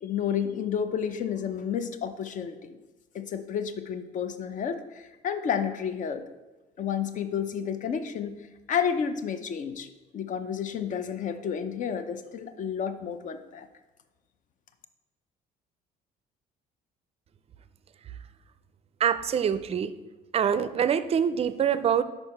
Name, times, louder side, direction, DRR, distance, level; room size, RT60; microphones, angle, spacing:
voice 1, 0.0-2.8 3.1-6.2 6.8-8.4 8.7-9.9 10.1-13.7, left 7 dB, 50° left, 10 dB, 0.6 m, -31 dB
voice 2, 19.0-19.9 20.3-22.0, right 8 dB, 35° right, 13 dB, 0.4 m, -25 dB
5.4 x 4.5 x 5.7 m, 1.1 s
cardioid pair, 110°, 17 cm